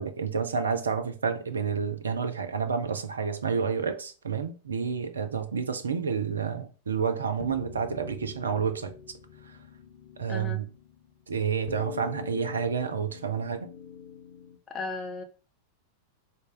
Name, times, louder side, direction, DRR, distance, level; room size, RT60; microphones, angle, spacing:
voice 1, 0.0-8.9 10.2-10.7 11.3-13.7, right 6 dB, 70° right, 0.5 m, -29 dB
sound 1, 7.4-14.6, left 7 dB, 60° left, 0.6 m, -44 dB
voice 2, 10.3-10.6 14.7-15.2, left 3 dB, 20° left, 0.7 m, -35 dB
3.8 x 2.0 x 3.7 m
figure-of-eight pair, 90°, 0 cm